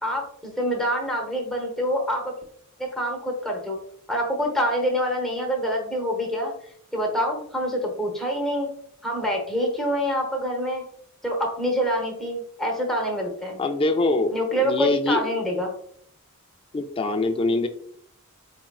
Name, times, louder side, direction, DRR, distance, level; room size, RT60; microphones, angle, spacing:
voice 1, 0.0-2.3 2.8-3.8 4.1-6.5 6.9-8.7 9.0-10.8 11.2-13.6 14.3-15.7, equal, ahead, -1 dB, 0.9 m, -26 dB
voice 2, 13.6-15.2 16.7-17.7, left 2 dB, 25° left, 6 dB, 0.3 m, -24 dB
4.3 x 3.6 x 2.3 m, 0.64 s
head